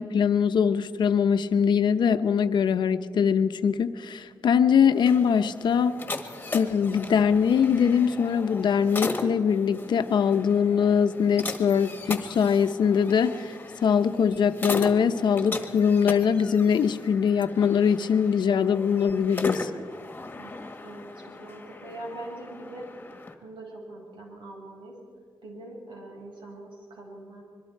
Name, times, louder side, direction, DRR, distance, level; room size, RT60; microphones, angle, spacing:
voice 1, 0.0-6.0 6.5-13.5 13.8-19.7, left 7 dB, 65° left, 9 dB, 0.8 m, -22 dB
sound 1, 4.8-23.3, left 2 dB, 20° left, 1.5 m, -38 dB
voice 2, 20.4-22.9 23.4-24.9 25.4-27.4, right 1 dB, 80° right, 0 dB, 5.9 m, -42 dB
25.5 x 22.5 x 4.6 m, 2.1 s
wide cardioid pair, 160°, 8 cm